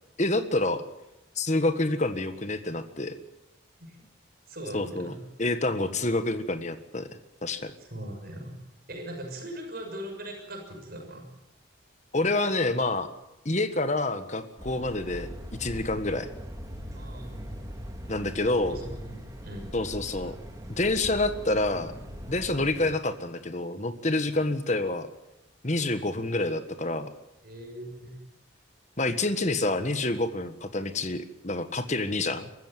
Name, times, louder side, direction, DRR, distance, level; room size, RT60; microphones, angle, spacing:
voice 1, 0.2-0.8 1.3-3.1 4.7-5.1 5.4-7.1 7.4-7.7 12.1-13.1 13.4-15.3 15.6-16.3 18.1-18.8 19.7-20.3 20.7-21.9 22.3-25.1 25.6-27.1 29.0-32.5, left 2 dB, 35° left, 9 dB, 1.5 m, -27 dB
voice 2, 4.5-5.1 7.8-8.6 8.9-11.3 16.9-17.5 18.7-19.1 19.4-19.7 27.4-28.2 31.8-32.0, right 1 dB, 50° right, 2 dB, 6.6 m, -40 dB
sound 1, 14.6-22.9, equal, 20° right, 2.7 m, -41 dB
23.5 x 14.5 x 9.2 m, 0.93 s
head